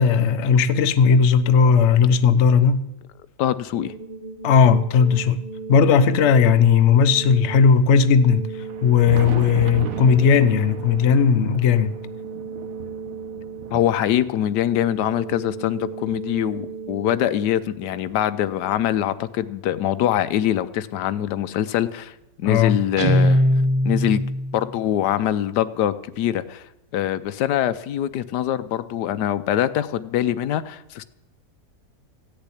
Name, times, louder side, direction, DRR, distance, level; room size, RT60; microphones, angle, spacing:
voice 1, 0.0-2.8 4.4-5.4 5.7-8.5 8.8-11.9 22.4-22.8, left 6 dB, 55° left, 0.9 m, -16 dB
voice 2, 3.4-3.9 13.7-22.1 22.4-23.4 23.8-24.2 24.5-26.6 26.9-31.0, left 11 dB, 90° left, 1.3 m, -23 dB
sound 1, 3.7-18.7, right 5 dB, 35° left, 1.2 m, -37 dB
Thunder, 8.5-17.1 17.8-19.5 20.6-20.7 21.3-21.4 23.2-23.3 24.7-24.8 26.4-26.5, right 6 dB, 60° right, 1.4 m, -36 dB
Guitar, 23.0-24.7, equal, 30° right, 0.6 m, -19 dB
16.0 x 6.9 x 9.8 m
omnidirectional pair, 1.7 m